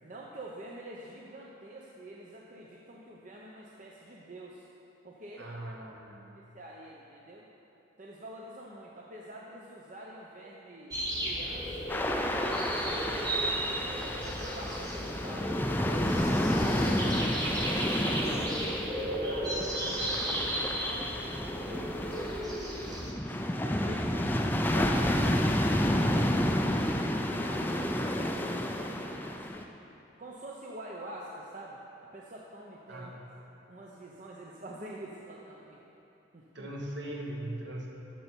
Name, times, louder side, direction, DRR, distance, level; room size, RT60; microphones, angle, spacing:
voice 1, 0.0-4.7 5.0-5.6 6.4-7.4 8.0-12.0 12.5-15.6 16.1-18.5 19.1-21.1 21.7-23.0 23.6-25.4 26.0-29.7 30.2-31.8 32.1-33.1 33.7-35.8 36.3-36.7, right 1 dB, 40° right, -3 dB, 0.7 m, -46 dB
voice 2, 5.4-6.3 32.9-33.3 36.5-37.9, right 1 dB, 60° right, -1 dB, 1.3 m, -40 dB
sound 1, 10.9-23.1, right 1 dB, 20° right, 1.2 m, -34 dB
sound 2, 11.9-29.6, left 1 dB, 10° left, 0.4 m, -30 dB
13.0 x 6.9 x 4.5 m, 2.9 s
head